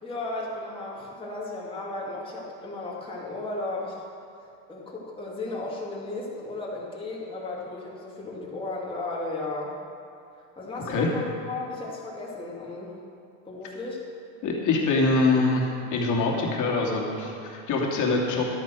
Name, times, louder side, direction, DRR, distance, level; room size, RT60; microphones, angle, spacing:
voice 1, 0.0-4.0 4.7-9.7 10.6-13.0 13.4-14.0, left 2 dB, 15° left, -5 dB, 2.8 m, -35 dB
voice 2, 14.4-15.6 15.9-18.5, left 3 dB, 45° left, -2 dB, 2.8 m, -24 dB
12.0 x 8.9 x 6.2 m, 2.5 s
supercardioid pair, 100°, 40 cm